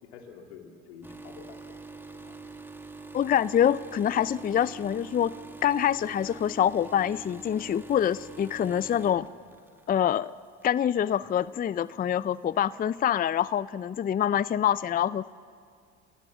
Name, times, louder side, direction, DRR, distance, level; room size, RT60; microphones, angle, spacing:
voice 1, 0.0-1.8 2.1-2.5, left 6 dB, 85° left, 3 dB, 2.5 m, -49 dB
sound 1, 1.0-10.2 10.6-10.9 11.8-11.9, right 3 dB, 5° right, 2.2 m, -45 dB
voice 2, 3.1-5.3 5.6-9.3 9.9-10.3 10.6-15.3, left 10 dB, 25° left, 18 dB, 0.5 m, -25 dB
29.0 x 16.5 x 7.1 m, 2.2 s
hypercardioid pair, 70°, 32 cm